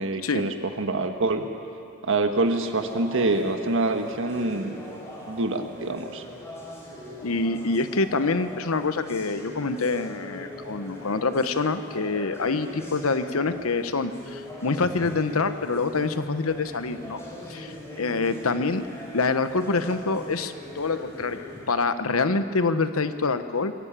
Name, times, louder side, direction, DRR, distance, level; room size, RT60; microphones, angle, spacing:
voice 1, 0.0-1.5 2.0-4.8 5.3-6.2, right 2 dB, 65° right, 6 dB, 1.5 m, -26 dB
sound 1, 2.4-21.7, left 1 dB, 15° left, 5.4 m, -41 dB
voice 2, 7.2-17.2 17.5-18.9 19.1-23.7, left 3 dB, 75° left, 10 dB, 1.0 m, -26 dB
22.5 x 15.0 x 8.9 m, 2.5 s
head